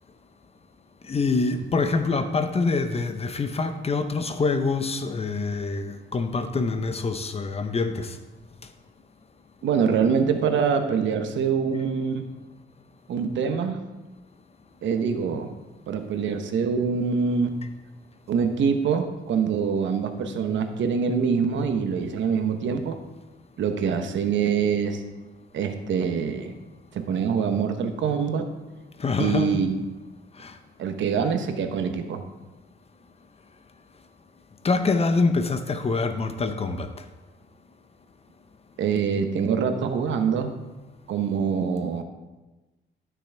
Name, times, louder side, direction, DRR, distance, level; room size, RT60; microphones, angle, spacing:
voice 1, 1.1-8.2 29.0-29.6 30.4-30.5 34.6-36.9, left 3 dB, 30° left, 9 dB, 0.8 m, -25 dB
voice 2, 9.6-12.3 13.1-13.8 14.8-15.5 15.9-17.6 18.3-23.0 23.6-25.0 25.5-26.5 26.9-28.5 29.2-29.7 30.8-32.2 38.8-40.5 41.1-42.0, right 6 dB, 70° right, 7 dB, 1.0 m, -24 dB
13.0 x 6.2 x 3.4 m, 1.1 s
cardioid pair, 90°, 20 cm